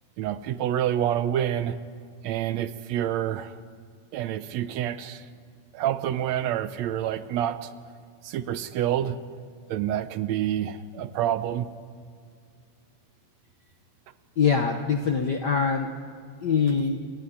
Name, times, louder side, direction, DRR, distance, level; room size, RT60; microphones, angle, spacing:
voice 1, 0.2-1.8 2.2-3.5 4.1-5.2 5.7-7.7 8.2-9.2 9.7-11.7, right 11 dB, 75° right, 13 dB, 1.9 m, -27 dB
voice 2, 14.4-15.9 16.4-17.0, left 6 dB, 65° left, 4 dB, 1.0 m, -23 dB
27.5 x 13.0 x 9.9 m, 2.1 s
omnidirectional pair, 3.3 m